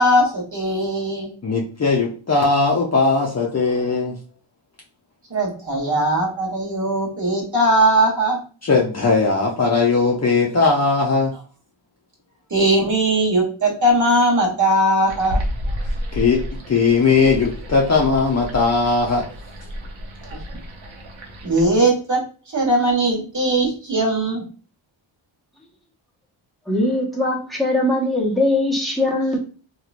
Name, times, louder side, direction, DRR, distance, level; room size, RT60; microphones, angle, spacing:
voice 1, 0.0-1.3 5.3-8.4 12.5-15.4 21.4-24.4, right 1 dB, 35° right, -3 dB, 1.6 m, -19 dB
voice 2, 1.4-4.2 8.6-11.3 16.1-19.3, left 4 dB, 30° left, -2 dB, 0.7 m, -18 dB
sound 1, 15.1-21.7, equal, 65° right, 1.0 m, -30 dB
voice 3, 26.7-29.4, left 1 dB, ahead, -3 dB, 1.2 m, -20 dB
3.0 x 2.9 x 2.5 m, 0.39 s
cardioid pair, 70°, 49 cm